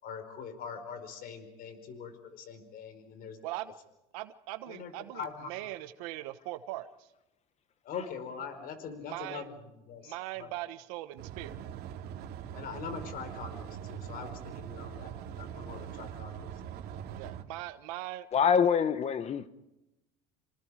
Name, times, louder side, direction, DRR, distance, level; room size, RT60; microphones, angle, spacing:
voice 1, 0.0-3.4 4.7-5.5 7.8-9.5 9.9-10.5 12.5-16.5, left 6 dB, 55° left, 4.9 m, -43 dB
voice 2, 3.4-3.7 4.1-7.1 9.0-9.4 10.0-11.7 17.2-18.3, right 16 dB, 85° right, 1.2 m, -40 dB
sound 1, 11.2-17.4, right 9 dB, 60° right, 2.6 m, -42 dB
voice 3, 18.3-19.5, left 7 dB, 35° left, 1.4 m, -25 dB
28.0 x 27.0 x 5.0 m
supercardioid pair, 110°, 18 cm